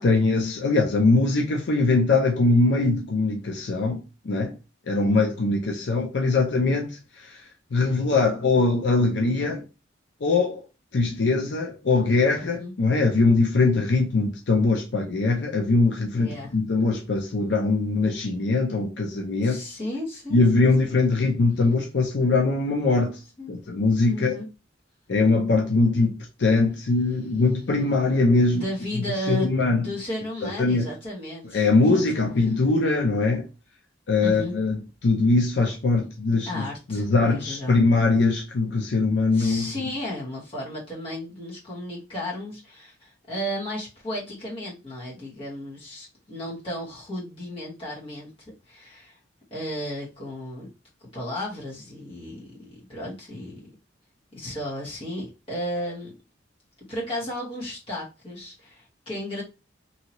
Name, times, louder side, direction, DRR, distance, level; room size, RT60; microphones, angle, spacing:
voice 1, 0.0-4.5 4.9-9.6 10.2-10.6 10.9-19.6 20.3-23.2 23.5-24.4 25.1-28.6 29.3-29.9 30.6-30.9 31.5-33.5 34.1-36.6 36.9-39.7, left 3 dB, 65° left, 0.5 m, -22 dB
voice 2, 12.4-12.7 16.1-16.5 19.4-20.7 23.4-23.5 24.1-24.5 28.5-32.6 34.2-34.5 36.5-37.8 39.3-49.2 49.5-50.7 51.0-53.6 54.3-56.1 56.9-59.4, equal, 30° left, 1.3 m, -34 dB
2.7 x 2.7 x 2.9 m
head